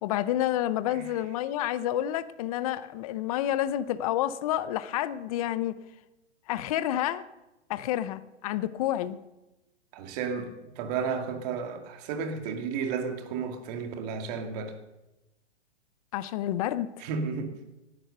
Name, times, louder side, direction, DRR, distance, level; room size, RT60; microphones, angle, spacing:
voice 1, 0.0-5.7 6.5-7.2 7.7-9.2 16.1-16.9, left 12 dB, 30° left, 0.7 m, -29 dB
voice 2, 9.9-14.7 17.0-17.5, right 5 dB, 35° right, 2.3 m, -33 dB
18.5 x 11.0 x 6.6 m
hypercardioid pair, 145°, 35 cm